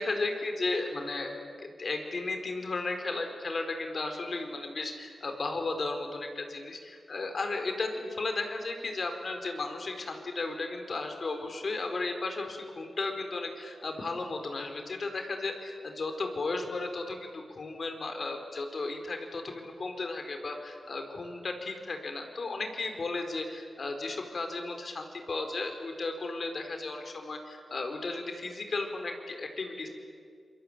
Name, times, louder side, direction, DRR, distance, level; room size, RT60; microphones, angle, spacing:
voice 1, 0.0-1.3 1.6-29.9, left 3 dB, 60° left, 5 dB, 4.5 m, -34 dB
27.5 x 23.5 x 9.0 m, 2.2 s
cardioid pair, 55°, 0 cm